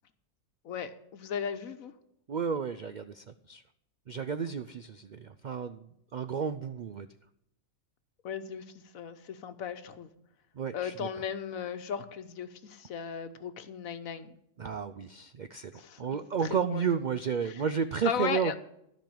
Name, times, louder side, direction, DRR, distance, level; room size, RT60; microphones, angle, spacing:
voice 1, 0.6-1.9 8.2-8.6 8.9-10.1 10.7-14.3 15.7-16.0 16.4-16.8 17.4-17.6 18.0-18.6, left 7 dB, 85° left, 10 dB, 1.3 m, -36 dB
voice 2, 2.3-3.6 4.1-5.9 6.1-7.1 10.6-11.1 14.6-18.6, right 6 dB, 70° right, 11 dB, 0.4 m, -32 dB
13.5 x 5.3 x 8.8 m, 0.79 s
omnidirectional pair, 1.4 m